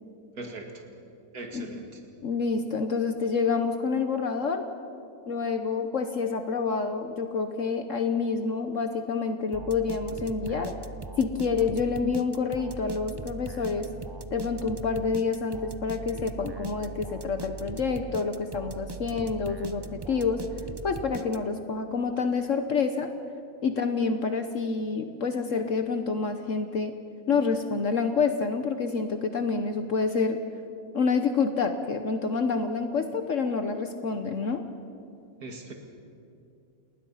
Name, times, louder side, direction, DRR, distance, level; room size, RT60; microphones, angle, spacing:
voice 1, 0.3-0.8 1.3-2.0 35.4-35.7, right 2 dB, 80° right, 3 dB, 2.7 m, -40 dB
voice 2, 2.2-4.7 5.3-10.8 11.2-13.9 14.3-20.4 20.8-23.1 23.6-26.9 27.3-30.4 30.9-34.6, left 5 dB, 60° left, 7 dB, 1.3 m, -28 dB
sound 1, 9.5-21.7, right 4 dB, 30° right, 0.4 m, -40 dB
29.5 x 20.0 x 5.7 m, 2.5 s
omnidirectional pair, 1.5 m